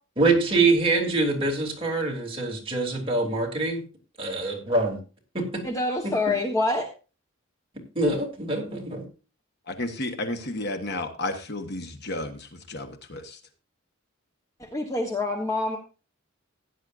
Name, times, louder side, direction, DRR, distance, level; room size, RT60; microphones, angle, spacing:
voice 1, 0.2-3.8 4.2-5.0 5.3-5.6 6.0-6.1 7.9-9.0, right 3 dB, 25° right, -1 dB, 3.1 m, -24 dB
voice 2, 5.6-6.9 14.6-15.8, left 2 dB, 15° left, 2 dB, 1.2 m, -26 dB
voice 3, 9.7-13.4, left 2 dB, 50° left, 6 dB, 1.3 m, -32 dB
16.0 x 10.0 x 2.6 m, 0.32 s
head